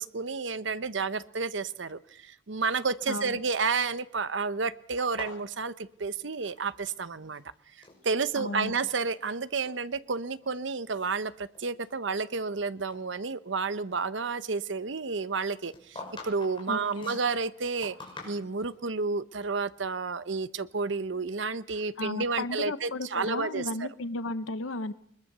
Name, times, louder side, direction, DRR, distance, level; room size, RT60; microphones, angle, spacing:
voice 1, 0.0-7.4 8.0-18.0 18.2-23.7, right 4 dB, 65° right, 15 dB, 0.8 m, -31 dB
sound 1, 5.0-7.0 7.2-8.0 8.6-9.2 9.5-9.8 10.4-10.5 11.1-12.6 12.9-13.0 15.3-18.8, left 3 dB, 25° left, 6.1 m, -46 dB
voice 2, 8.4-8.7 16.7-17.2 22.0-24.9, left 2 dB, 85° left, 13 dB, 0.9 m, -34 dB
22.0 x 21.0 x 6.7 m, 0.69 s
head